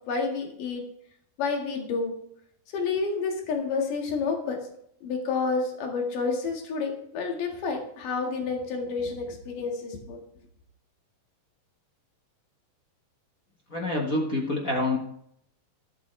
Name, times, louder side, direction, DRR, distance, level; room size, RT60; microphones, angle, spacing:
voice 1, 0.1-0.8 1.4-2.1 2.7-4.6 5.0-10.2, left 4 dB, 70° left, 2 dB, 3.5 m, -29 dB
voice 2, 13.7-15.0, left 2 dB, 55° left, 0 dB, 0.9 m, -27 dB
13.0 x 12.0 x 3.3 m, 0.69 s
omnidirectional pair, 3.9 m